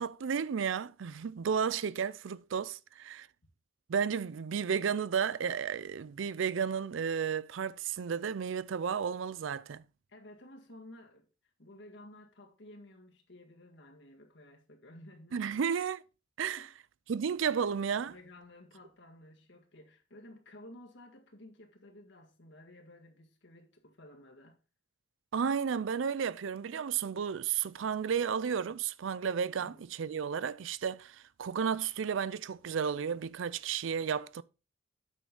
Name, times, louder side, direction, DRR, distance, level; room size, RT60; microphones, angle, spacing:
voice 1, 0.0-3.3 3.9-9.8 15.3-16.0 16.4-16.6 17.1-18.1 25.3-34.4, right 7 dB, 75° right, 0.4 m, -33 dB
voice 2, 10.1-11.3 11.6-15.4 16.5-16.7 18.1-24.6 29.6-29.9, left 1 dB, 65° left, 1.8 m, -54 dB
8.8 x 6.2 x 3.8 m
head